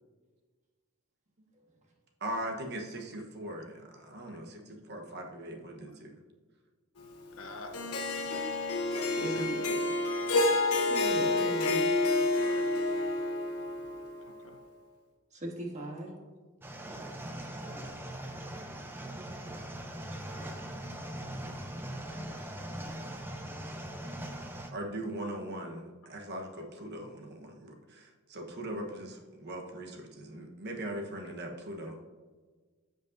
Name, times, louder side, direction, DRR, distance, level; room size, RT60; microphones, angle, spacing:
voice 1, 2.2-6.1 24.3-24.5 24.7-32.0, right 1 dB, 50° right, 2 dB, 1.1 m, -40 dB
voice 2, 7.4-8.4 9.2-9.5 11.0-11.4 12.4-12.7 14.3-14.6, left 2 dB, 65° left, 5 dB, 0.7 m, -47 dB
Harp, 7.7-14.1, left 2 dB, 90° left, 1.1 m, -29 dB
voice 3, 9.1-9.8 10.9-11.9 15.3-16.1 17.6-17.8, right 1 dB, 30° right, 0 dB, 1.5 m, -38 dB
sound 1, 16.6-24.7, right 1 dB, 10° right, 0.6 m, -41 dB
14.5 x 5.2 x 2.6 m, 1.4 s
head